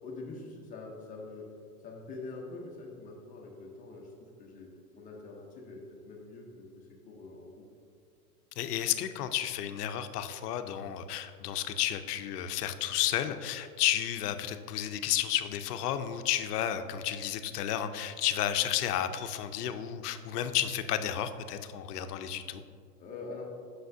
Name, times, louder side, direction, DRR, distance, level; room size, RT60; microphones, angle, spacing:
voice 1, 0.0-1.5 1.8-7.6 23.0-23.5, left 3 dB, 15° left, -1 dB, 0.7 m, -45 dB
voice 2, 8.6-22.6, left 11 dB, 70° left, 9 dB, 0.6 m, -32 dB
7.7 x 5.9 x 2.6 m, 2.2 s
hypercardioid pair, 140°, 49 cm